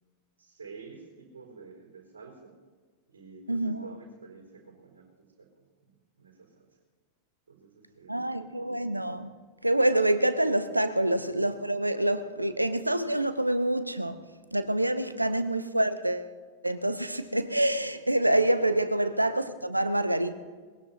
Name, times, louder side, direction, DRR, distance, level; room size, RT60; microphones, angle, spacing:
voice 1, 0.4-2.5 3.1-5.5 6.2-6.7 7.5-8.5 11.0-11.2 15.2-15.4 18.7-18.8, right 4 dB, 70° right, 4.4 m, -49 dB
voice 2, 3.5-3.8 8.1-9.3 9.6-14.2 14.5-16.3 16.6-20.3, right 1 dB, 85° right, 0.7 m, -26 dB
22.5 x 20.0 x 2.8 m
figure-of-eight pair, 90°, 0 cm